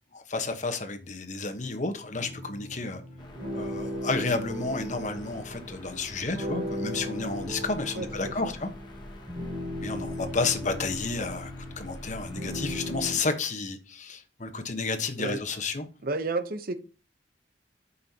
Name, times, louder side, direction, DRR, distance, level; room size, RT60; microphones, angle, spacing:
voice 1, 0.1-3.0 3.5-8.7 9.8-15.8, left 3 dB, 45° left, 1.2 m, -31 dB
sound 1, 2.1-13.2, left 1 dB, 30° right, 5.1 m, -37 dB
sound 2, 3.2-13.3, left 1 dB, 25° left, 1.8 m, -47 dB
voice 2, 8.0-8.5 15.2-15.4 16.0-16.8, right 3 dB, 55° right, 0.9 m, -32 dB
13.5 x 5.6 x 2.9 m
head